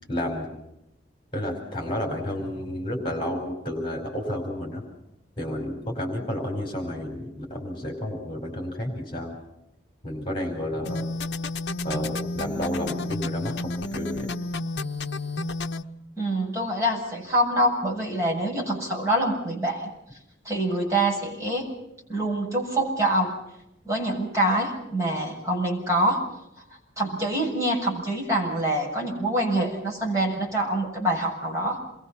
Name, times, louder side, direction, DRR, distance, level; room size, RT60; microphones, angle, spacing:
voice 1, 0.1-0.6 1.3-4.8 5.4-9.4 10.0-11.1 11.8-14.3, left 1 dB, 25° left, 2 dB, 4.8 m, -31 dB
sound 1, 10.9-15.8, left 2 dB, 60° left, 1.0 m, -31 dB
voice 2, 16.2-19.9 20.4-21.6 22.1-23.4 23.8-26.2 27.0-31.8, right 1 dB, 15° right, -3 dB, 7.8 m, -25 dB
28.5 x 22.5 x 5.8 m, 0.84 s
head